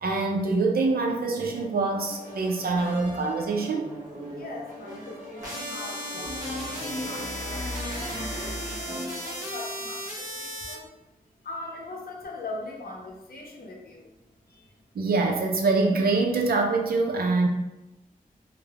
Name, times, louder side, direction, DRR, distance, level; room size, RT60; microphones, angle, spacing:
voice 1, 0.0-3.9 14.9-17.5, right 3 dB, 85° right, 2 dB, 0.4 m, -25 dB
sound 1, 1.2-9.5, equal, 55° right, 0.8 m, -41 dB
voice 2, 4.3-10.9 11.4-14.1 14.5-14.7, left 2 dB, 75° left, -1 dB, 0.6 m, -41 dB
sound 2, 5.4-10.7, equal, 20° right, 0.9 m, -36 dB
sound 3, 6.2-9.6 12.2-12.3, left 1 dB, 40° left, 1.0 m, -37 dB
3.3 x 2.0 x 2.3 m, 0.95 s
wide cardioid pair, 60°, 15 cm